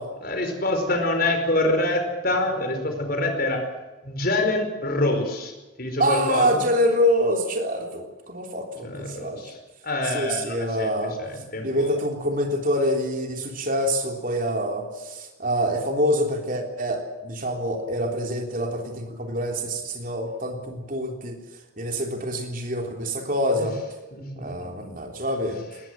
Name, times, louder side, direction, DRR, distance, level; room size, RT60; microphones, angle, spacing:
voice 1, 0.2-3.6 4.0-5.5 5.8-6.7 8.8-9.6 9.8-11.9 23.6-23.7 24.1-24.7, left 2 dB, 45° left, 6 dB, 4.8 m, -26 dB
voice 2, 6.0-9.4 10.1-11.2 11.6-21.4 21.8-23.8 24.4-25.6, equal, 40° right, 3 dB, 3.5 m, -26 dB
20.0 x 20.0 x 7.6 m, 1.2 s
head